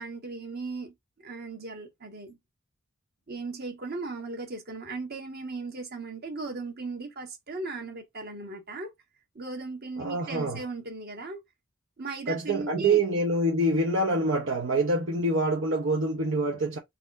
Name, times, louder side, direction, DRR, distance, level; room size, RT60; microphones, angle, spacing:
voice 1, 0.0-2.4 3.3-8.9 9.3-11.4 12.0-13.0, right 3 dB, 50° right, 1.4 m, -37 dB
voice 2, 10.0-10.6 12.3-16.8, right 2 dB, 65° right, 0.9 m, -26 dB
4.1 x 2.6 x 4.0 m
head